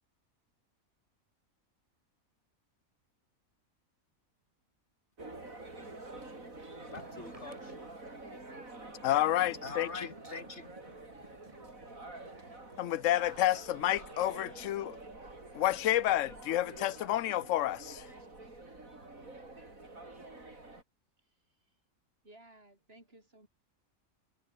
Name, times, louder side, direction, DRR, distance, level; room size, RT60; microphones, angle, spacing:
sound 1, 5.2-20.8, right 2 dB, 70° right, 5.8 m, -48 dB
voice 1, 6.9-7.6 8.3-8.6 9.6-10.7, left 4 dB, 50° left, 2.9 m, -44 dB
sound 2, 6.9-14.3, right 1 dB, 25° right, 4.7 m, -58 dB
voice 2, 9.0-10.1 12.8-15.0 15.5-18.1, left 13 dB, 70° left, 1.0 m, -30 dB
voice 3, 21.2-21.8 22.2-23.5, right 1 dB, 45° right, 8.2 m, -59 dB
omnidirectional pair, 1.5 m